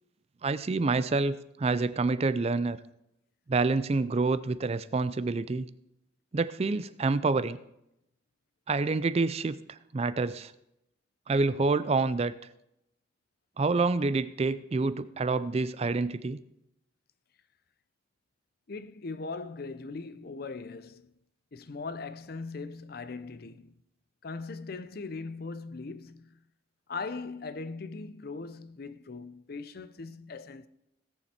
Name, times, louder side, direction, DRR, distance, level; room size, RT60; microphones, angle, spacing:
voice 1, 0.4-2.8 3.5-5.7 6.3-7.6 8.7-10.5 11.3-12.3 13.6-16.4, right 3 dB, 35° right, 0.4 m, -27 dB
voice 2, 18.7-21.1 21.5-23.8 24.2-26.4 26.9-30.7, left 4 dB, 55° left, 0.6 m, -40 dB
17.5 x 6.9 x 4.3 m
head